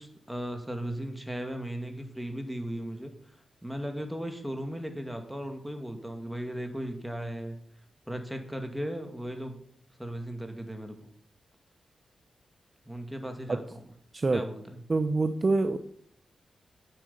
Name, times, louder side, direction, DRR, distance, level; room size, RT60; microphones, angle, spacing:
voice 1, 0.0-3.1 3.6-7.6 8.1-9.5 10.0-11.1 12.9-13.9 14.3-14.8, equal, 5° right, 5 dB, 2.4 m, -36 dB
voice 2, 14.9-15.8, right 3 dB, 35° right, 8 dB, 0.9 m, -25 dB
9.9 x 8.1 x 8.7 m, 0.63 s
cardioid pair, 90°, 0 cm